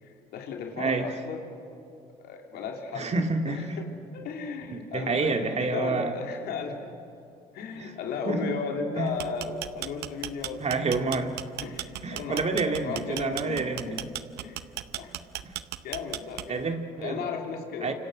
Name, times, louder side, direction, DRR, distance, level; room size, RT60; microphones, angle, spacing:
voice 1, 0.0-1.5 2.2-3.1 3.5-6.9 7.5-10.6 11.1-11.2 11.6-14.0 14.4-14.6 14.9-15.1 15.8-16.6 17.0-17.9, left 5 dB, 70° left, 2 dB, 3.2 m, -35 dB
voice 2, 0.8-1.1 2.9-3.8 4.7-6.1 7.7-7.9 8.3-8.5 9.0-9.1 10.6-11.3 12.0-14.0 15.4-15.6 16.5-17.2 17.8-17.9, right 3 dB, 40° right, 5 dB, 2.3 m, -28 dB
sound 1, 9.1-16.7, right 15 dB, 75° right, 0.8 m, -36 dB
29.0 x 26.0 x 6.3 m, 2.6 s
hypercardioid pair, 60°, 17 cm